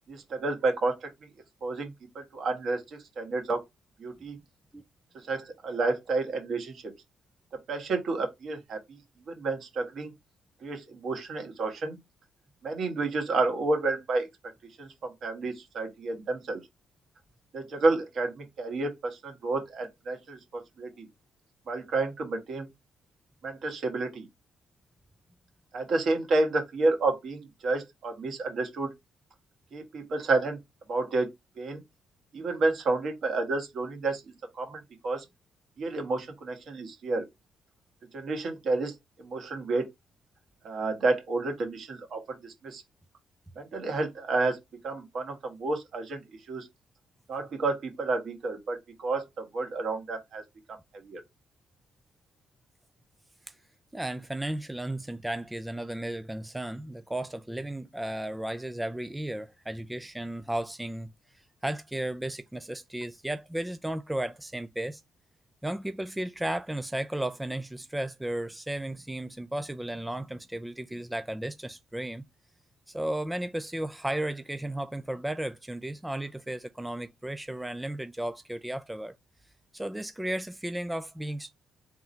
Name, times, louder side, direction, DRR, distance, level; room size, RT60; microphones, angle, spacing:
voice 1, 0.1-1.1 1.6-3.6 4.0-4.4 5.3-6.9 7.7-9.0 9.3-10.1 10.6-12.0 12.6-14.3 14.8-16.6 17.5-21.1 21.7-22.7 23.4-24.3 25.7-28.9 29.7-30.6 30.9-31.3 31.6-31.8 32.3-34.2 34.5-35.2 35.8-37.2 38.1-39.9 40.6-42.8 43.5-44.6 44.8-46.7 47.3-50.4 50.9-51.2, right 3 dB, 60° right, 1.5 m, -30 dB
voice 2, 53.9-61.1 61.6-65.0 65.6-72.2 72.9-79.1 79.7-81.5, right 1 dB, 10° right, 0.3 m, -34 dB
3.5 x 2.7 x 4.3 m
cardioid pair, 90°, 0 cm